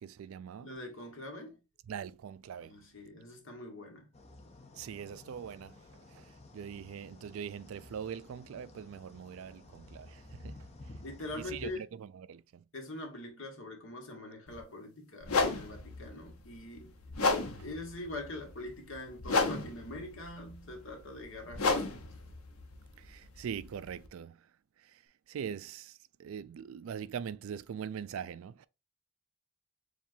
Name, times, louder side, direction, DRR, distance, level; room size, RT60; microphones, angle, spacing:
voice 1, 0.0-0.7 1.9-2.8 4.8-5.8 6.1-6.3 6.5-10.6 11.4-12.6 23.0-24.4 24.9-25.0 25.3-28.7, right 7 dB, 70° right, 0.3 m, -42 dB
voice 2, 0.6-1.6 2.6-4.1 11.0-11.8 12.7-16.9 17.6-21.9, left 2 dB, 60° left, 1.4 m, -43 dB
sound 1, 4.1-11.8, left 1 dB, 30° left, 0.7 m, -52 dB
sound 2, 14.5-14.6 15.2-24.1, left 3 dB, 80° left, 0.9 m, -34 dB
7.1 x 2.4 x 2.6 m
head